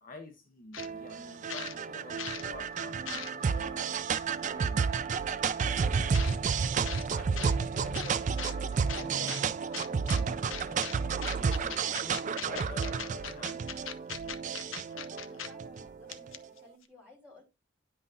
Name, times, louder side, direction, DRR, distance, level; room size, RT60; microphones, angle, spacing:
voice 1, 0.0-4.0 4.4-5.2 5.6-9.3 9.9-13.9, left 2 dB, 45° left, 5 dB, 0.9 m, -48 dB
sound 1, 0.7-0.9 1.3-2.5 2.8-3.6 4.4-4.5 6.1-6.4 6.8-7.1 7.4-7.5 7.9-8.5 8.9-9.4 9.7-10.2 10.5-10.9 11.2-15.5 15.8-15.9 16.1-16.6, left 8 dB, 70° left, 0.6 m, -39 dB
sound 2, 0.8-16.3, right 5 dB, 35° right, 0.3 m, -31 dB
voice 2, 15.1-17.4, left 2 dB, 5° right, -4 dB, 3.2 m, -56 dB
9.4 x 5.5 x 2.7 m, 0.26 s
head